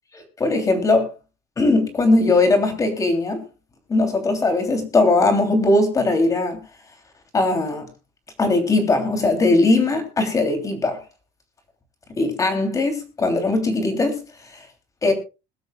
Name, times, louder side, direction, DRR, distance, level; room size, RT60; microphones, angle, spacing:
voice 1, 0.1-1.1 1.6-3.4 3.9-6.6 7.3-7.9 8.4-11.0 12.2-14.2 14.5-14.6 15.0-15.1, left 2 dB, 20° left, 6 dB, 3.0 m, -19 dB
22.0 x 12.5 x 2.3 m, 0.29 s
cardioid pair, 175°, 18 cm